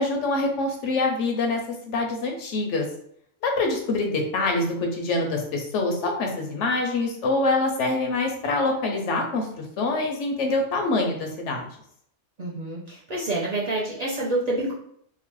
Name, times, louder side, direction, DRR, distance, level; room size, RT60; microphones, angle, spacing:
voice 1, 0.0-1.6 1.9-2.8 3.4-11.7, left 2 dB, 80° left, 3 dB, 0.9 m, -25 dB
voice 2, 12.4-14.7, right 2 dB, 45° right, -6 dB, 0.6 m, -27 dB
2.9 x 2.1 x 3.0 m, 0.67 s
omnidirectional pair, 1.2 m